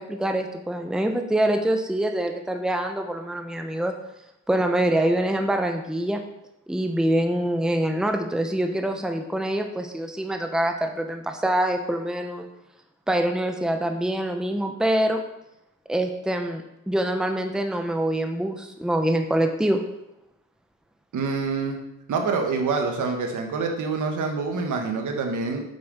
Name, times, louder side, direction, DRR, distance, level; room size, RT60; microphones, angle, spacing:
voice 1, 0.0-3.9 4.5-6.2 6.7-12.5 13.1-15.2 15.9-19.8, right 1 dB, ahead, 4 dB, 0.9 m, -25 dB
voice 2, 21.1-21.8 22.1-25.6, right 4 dB, 75° right, 3 dB, 1.6 m, -26 dB
8.1 x 5.3 x 5.4 m, 0.88 s
cardioid pair, 80°, 31 cm